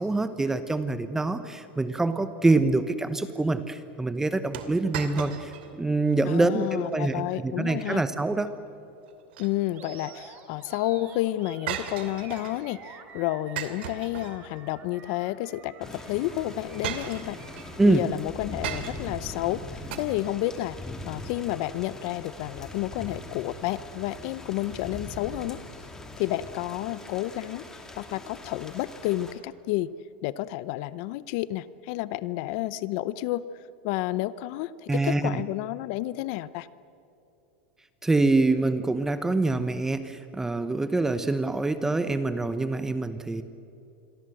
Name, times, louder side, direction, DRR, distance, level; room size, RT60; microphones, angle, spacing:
voice 1, 0.0-8.5 17.8-18.1 34.9-35.4 38.0-43.4, right 2 dB, 10° right, 11 dB, 0.9 m, -25 dB
sound 1, 4.5-5.7 6.1-6.2 6.8-7.2 9.1-9.9 11.7-12.7 13.6-14.7 15.9-16.0 16.8-17.7 18.6-19.2 19.9-20.0, right 10 dB, 75° right, 2.6 m, -36 dB
voice 2, 6.2-8.0 9.4-17.4 17.8-20.8 21.1-25.6 26.2-27.6 28.0-29.9 30.2-36.7, left 15 dB, 55° left, 17 dB, 0.7 m, -30 dB
Animal, 9.7-17.9, right 6 dB, 30° right, 3.5 m, -48 dB
Thunder / Rain, 15.8-29.3, left 2 dB, 10° left, 2.6 m, -42 dB
27.5 x 22.5 x 7.8 m, 2.7 s
supercardioid pair, 140°, 6 cm